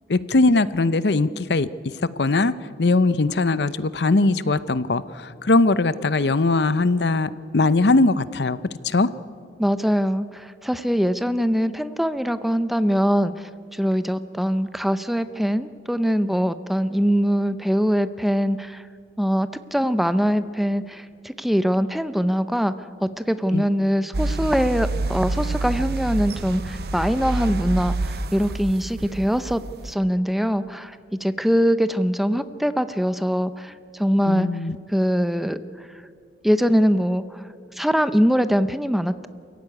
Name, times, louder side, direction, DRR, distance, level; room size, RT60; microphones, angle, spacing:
voice 1, 0.1-1.7 2.2-2.5 2.8-8.6 8.8-9.1 23.5-23.6 34.3-34.8, left 3 dB, 70° left, 15 dB, 0.7 m, -20 dB
voice 2, 9.6-18.8 19.2-34.5 34.9-35.6 36.4-39.3, equal, ahead, 12 dB, 0.6 m, -22 dB
sound 1, 24.1-29.9, right 2 dB, 60° right, 0.7 m, -28 dB
28.0 x 15.5 x 9.7 m, 2.3 s
head